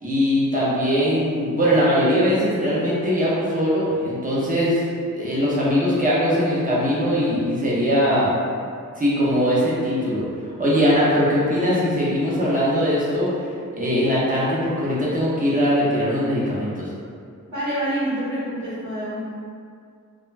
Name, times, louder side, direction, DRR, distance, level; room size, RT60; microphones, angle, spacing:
voice 1, 0.0-4.9 5.1-8.3 9.0-10.3 10.6-13.3 13.7-16.9, equal, 25° right, -8 dB, 0.7 m, -21 dB
voice 2, 17.5-19.2, right 1 dB, 80° right, -10 dB, 1.0 m, -26 dB
2.4 x 2.2 x 3.1 m, 2.2 s
wide cardioid pair, 145°, 31 cm